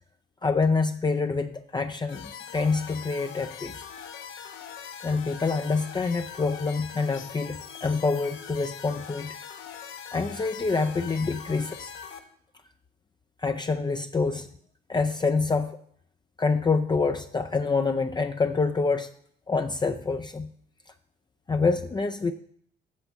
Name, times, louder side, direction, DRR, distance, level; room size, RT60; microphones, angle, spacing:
voice 1, 0.4-3.8 5.0-9.3 10.1-11.9 13.4-14.5 14.9-15.8 16.4-19.1 19.5-20.5 21.5-22.3, left 4 dB, 20° left, 5 dB, 0.5 m, -26 dB
sound 1, 2.1-12.2, left 7 dB, 85° left, 1.1 m, -42 dB
8.3 x 6.6 x 5.6 m, 0.64 s
cardioid pair, 90°, 20 cm